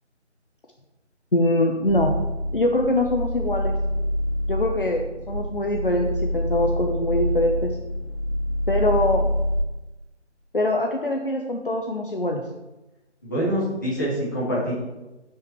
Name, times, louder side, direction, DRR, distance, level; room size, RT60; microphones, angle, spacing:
voice 1, 1.3-2.2 2.5-3.8 4.5-7.8 8.7-9.3 10.5-12.5, left 1 dB, 50° left, 2 dB, 0.9 m, -23 dB
sound 1, 1.9-9.6, equal, 55° right, 2.3 m, -26 dB
voice 2, 13.2-14.7, equal, 15° left, -8 dB, 1.9 m, -25 dB
10.0 x 5.7 x 4.5 m, 1.1 s
figure-of-eight pair, 170°, 36 cm